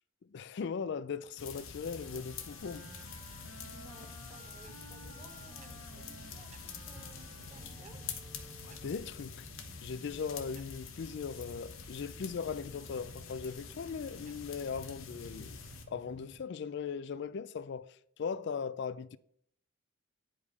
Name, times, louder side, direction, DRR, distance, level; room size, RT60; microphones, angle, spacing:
voice 1, 0.3-2.9 8.6-9.5 9.8-15.6 15.9-19.2, left 6 dB, 60° left, 0.4 m, -39 dB
sound 1, 1.4-15.9, left 6 dB, 90° left, 1.2 m, -47 dB
sound 2, 1.8-9.3, right 3 dB, 75° right, 1.0 m, -55 dB
sound 3, 2.0-16.5, right 3 dB, 35° right, 0.4 m, -58 dB
voice 2, 3.7-8.0, right 2 dB, 20° right, 0.8 m, -58 dB
9.9 x 5.3 x 4.7 m
head